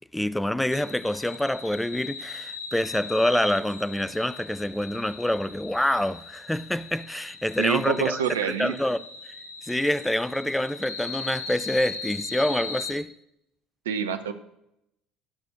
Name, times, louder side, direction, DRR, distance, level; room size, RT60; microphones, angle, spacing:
voice 1, 0.1-8.2 8.6-9.0 9.6-13.1, left 1 dB, 5° left, 0.4 m, -26 dB
sound 1, 0.7-12.9, left 4 dB, 85° left, 0.9 m, -39 dB
voice 2, 7.6-8.7 13.8-14.3, right 8 dB, 75° right, 0.7 m, -26 dB
11.5 x 6.2 x 6.5 m
figure-of-eight pair, 60°, 0 cm